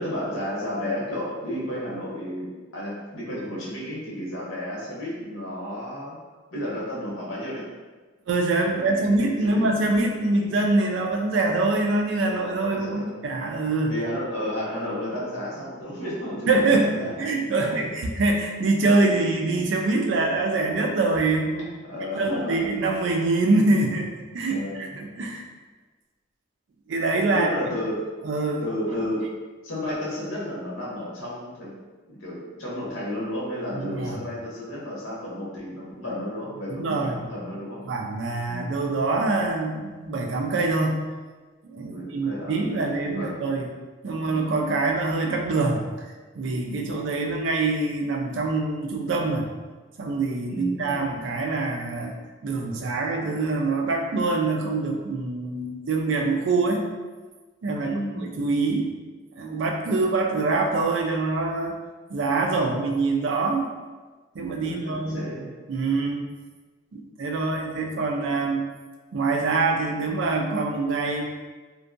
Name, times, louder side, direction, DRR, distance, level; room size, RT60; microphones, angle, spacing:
voice 1, 0.0-6.2 6.5-7.6 8.7-9.7 12.7-13.1 13.9-17.8 21.9-22.7 24.5-25.0 27.3-28.0 28.6-29.2 29.6-31.7 32.1-37.8 38.5-38.8 41.9-42.8 43.1-43.4 44.1-44.4 50.5-51.1 57.8-58.3 64.6-65.5, left 1 dB, 85° left, -6 dB, 0.9 m, -32 dB
voice 2, 8.3-13.9 16.5-16.9 17.2-21.7 22.0-25.4 26.9-27.5 28.2-28.6 33.8-34.2 36.7-37.2 37.8-41.0 41.6-43.7 44.0-45.9 46.4-49.5 50.0-52.2 52.4-56.8 57.6-57.9 58.4-58.9 59.4-61.8 62.1-63.7 64.3-65.3 65.7-66.2 66.9-68.6 69.1-71.3, right 3 dB, 70° right, 2 dB, 0.4 m, -24 dB
2.6 x 2.2 x 2.4 m, 1.3 s
head